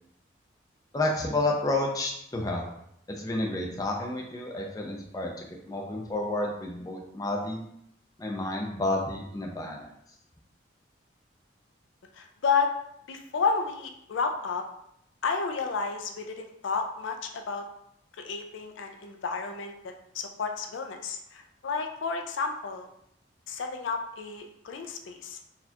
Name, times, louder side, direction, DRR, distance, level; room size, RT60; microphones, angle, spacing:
voice 1, 0.9-2.7 3.1-5.3 5.7-7.6 8.2-9.9, left 2 dB, 20° left, 0 dB, 0.4 m, -30 dB
voice 2, 12.1-12.7 13.1-14.6 15.2-17.6 18.2-22.9 23.5-25.4, left 5 dB, 80° left, 4 dB, 0.4 m, -31 dB
4.1 x 2.4 x 2.8 m, 0.74 s
head